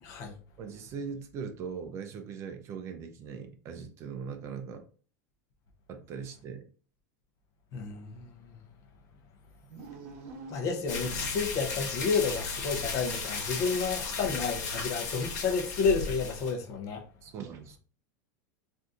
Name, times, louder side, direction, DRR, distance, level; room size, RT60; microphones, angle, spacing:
voice 1, 0.0-0.4 7.7-8.5 10.5-17.0, left 5 dB, 40° left, 0.7 m, -31 dB
voice 2, 0.6-4.9 5.9-6.6 14.2-14.4 17.2-17.8, right 6 dB, 30° right, 0.4 m, -40 dB
sound 1, 9.6-11.7, right 4 dB, 55° right, 0.8 m, -46 dB
sound 2, 10.9-16.5, left 4 dB, 75° left, 1.1 m, -35 dB
3.8 x 2.6 x 2.4 m
supercardioid pair, 160°, 9 cm